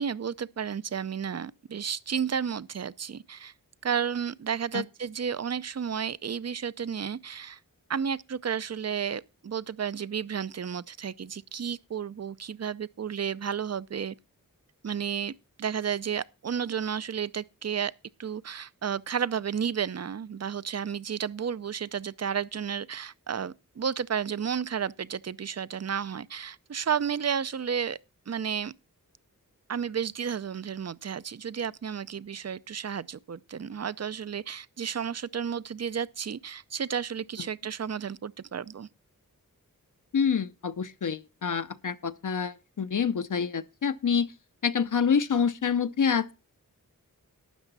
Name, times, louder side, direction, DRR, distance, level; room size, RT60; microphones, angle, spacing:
voice 1, 0.0-3.5 3.8-7.6 7.9-14.1 14.8-15.3 15.6-17.9 18.2-28.0 28.3-28.7 29.7-38.9, right 7 dB, 50° right, 0.6 m, -32 dB
voice 2, 40.1-44.3 44.6-46.3, left 6 dB, 65° left, 0.7 m, -27 dB
12.5 x 8.9 x 4.1 m
wide cardioid pair, 65°, 34 cm